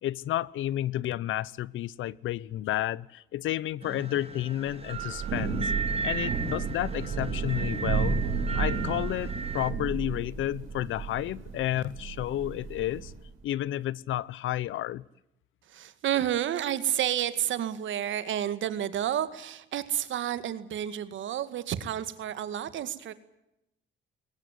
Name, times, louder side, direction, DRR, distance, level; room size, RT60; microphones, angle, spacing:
voice 1, 0.0-5.7 6.0-8.2 8.5-13.1 13.4-15.0, left 13 dB, 80° left, 0.8 m, -31 dB
sound 1, 3.8-9.7, right 5 dB, 30° right, 2.7 m, -36 dB
Thunder / Rain, 4.7-13.3, right 5 dB, 90° right, 4.9 m, -32 dB
voice 2, 15.7-23.1, right 11 dB, 75° right, 2.1 m, -30 dB
22.0 x 20.0 x 9.5 m
cardioid pair, 90°, 20 cm